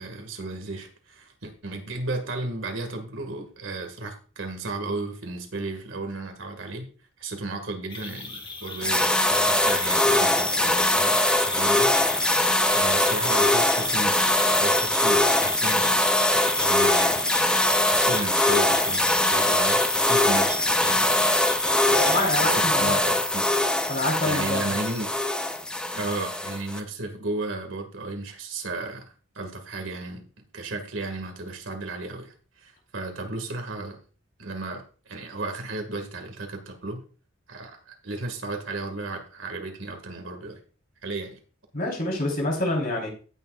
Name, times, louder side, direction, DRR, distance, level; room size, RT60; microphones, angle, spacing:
voice 1, 0.0-6.9 7.2-16.0 16.3-17.3 17.6-21.2 21.5-23.5 24.2-25.1 25.9-30.2 30.5-34.0 34.4-37.0 37.5-40.6 41.0-41.4, right 2 dB, 70° right, 5 dB, 2.0 m, -34 dB
sound 1, 7.9-22.3, left 4 dB, 25° left, 1.3 m, -38 dB
sound 2, 8.8-26.8, left 1 dB, 5° left, 0.5 m, -22 dB
voice 2, 22.1-23.2 23.9-24.8 41.7-43.1, left 1 dB, 45° left, -1 dB, 3.9 m, -27 dB
17.0 x 6.6 x 2.5 m, 0.37 s
head